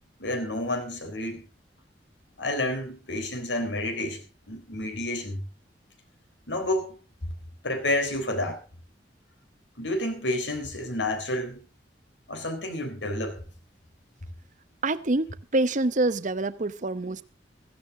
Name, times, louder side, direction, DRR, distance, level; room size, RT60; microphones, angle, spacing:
voice 1, 0.2-1.5 2.4-5.4 6.5-7.0 7.6-8.6 9.8-11.6 12.3-13.4, left 1 dB, 80° left, 3.8 m, -30 dB
voice 2, 14.8-15.3 15.5-17.2, right 2 dB, 45° right, 0.8 m, -25 dB
16.0 x 14.5 x 3.7 m
head